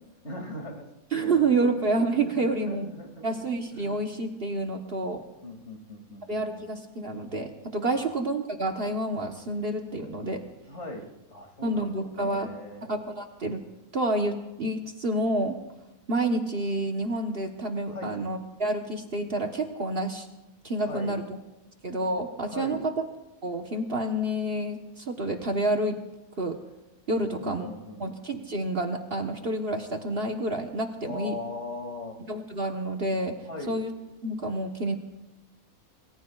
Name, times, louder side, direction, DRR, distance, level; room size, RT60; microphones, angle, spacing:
voice 1, 0.2-0.9 1.1-4.1 5.4-6.6 7.9-8.1 10.7-12.9 17.9-18.1 20.8-21.2 22.5-22.8 27.2-28.1 31.0-32.2 33.4-33.8, left 2 dB, 50° left, 3 dB, 2.8 m, -40 dB
voice 2, 1.1-2.9 3.2-5.2 6.3-10.4 11.6-13.6 13.9-15.6 16.1-20.3 20.6-21.2 21.8-22.9 23.4-26.0 26.4-26.6 27.1-27.7 28.0-31.4 32.3-33.4 33.7-33.9 34.2-35.0, right 2 dB, 45° right, 4 dB, 1.3 m, -29 dB
28.0 x 20.0 x 2.4 m, 1.0 s
omnidirectional pair, 1.5 m